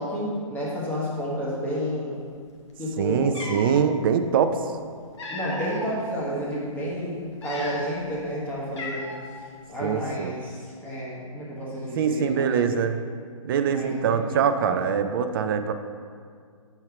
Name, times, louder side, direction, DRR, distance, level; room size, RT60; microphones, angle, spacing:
voice 1, 0.0-2.2 2.8-3.3 5.3-9.1 9.7-12.8 13.7-14.8, equal, 10° left, -8 dB, 1.4 m, -31 dB
Cat, 2.8-2.9 3.3-3.8 4.8-6.0 6.5-6.7 7.3-8.1 8.3-8.4 8.8-9.4, left 2 dB, 55° left, 1.1 m, -35 dB
voice 2, 3.0-4.6 9.8-10.3 12.0-13.0 13.4-15.7, right 7 dB, 40° right, 8 dB, 0.4 m, -23 dB
5.6 x 4.5 x 4.5 m, 2.1 s
hypercardioid pair, 140°, 18 cm